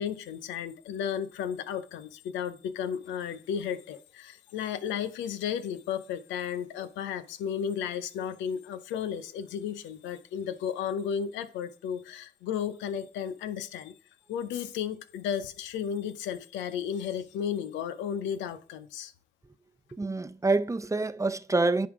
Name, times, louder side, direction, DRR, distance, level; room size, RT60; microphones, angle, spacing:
voice 1, 0.0-14.0 14.3-19.1, left 8 dB, 85° left, 0.7 m, -34 dB
voice 2, 19.9-21.9, right 3 dB, 15° right, 0.7 m, -27 dB
10.0 x 3.7 x 4.8 m
hypercardioid pair, 40°, 18 cm